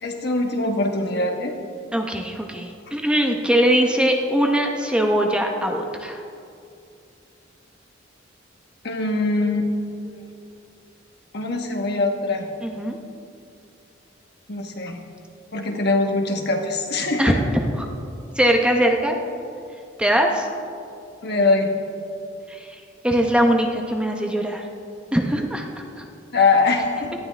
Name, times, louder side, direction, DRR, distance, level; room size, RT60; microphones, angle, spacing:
voice 1, 0.0-1.5 8.8-9.7 10.0-10.3 11.3-12.5 14.5-15.0 15.5-17.4 21.2-21.7 26.3-27.1, left 3 dB, 60° left, 3 dB, 1.3 m, -22 dB
voice 2, 1.9-6.2 12.6-13.0 17.2-17.3 17.8-17.9 18.4-19.2 20.0-20.5 22.5-24.6 25.1-25.6 26.0-26.1, equal, 5° right, 2 dB, 0.8 m, -21 dB
18.0 x 12.5 x 3.4 m, 2.5 s
head